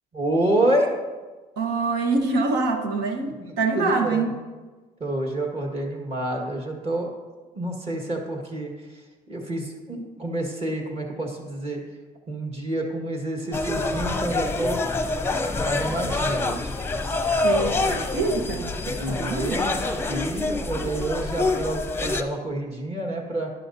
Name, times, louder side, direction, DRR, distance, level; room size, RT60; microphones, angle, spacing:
voice 1, 0.1-0.9 3.5-4.3 5.0-7.1 7.5-8.7 9.3-11.8 12.3-14.8 15.6-16.7 19.0-19.8 20.1-23.5, right 1 dB, 35° right, 1 dB, 1.9 m, -28 dB
voice 2, 1.6-4.3 17.4-19.6, right 3 dB, 90° right, 4 dB, 1.3 m, -25 dB
sound 1, 13.5-22.2, left 2 dB, 15° left, 0.7 m, -26 dB
11.0 x 11.0 x 2.8 m, 1.3 s
cardioid pair, 110°, 17 cm